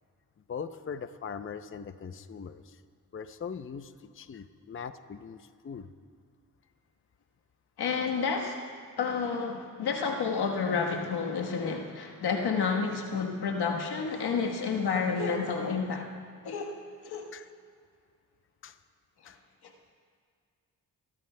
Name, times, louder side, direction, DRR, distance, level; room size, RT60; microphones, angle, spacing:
voice 1, 0.5-2.8 3.1-5.9 17.3-17.5 18.6-18.8 19.3-19.4, left 6 dB, 35° left, 10 dB, 0.6 m, -41 dB
voice 2, 7.8-8.6 9.0-16.1 16.4-16.7 17.0-17.3, left 5 dB, 80° left, 1 dB, 1.4 m, -30 dB
28.0 x 12.5 x 2.2 m, 2.1 s
supercardioid pair, 50°, 38 cm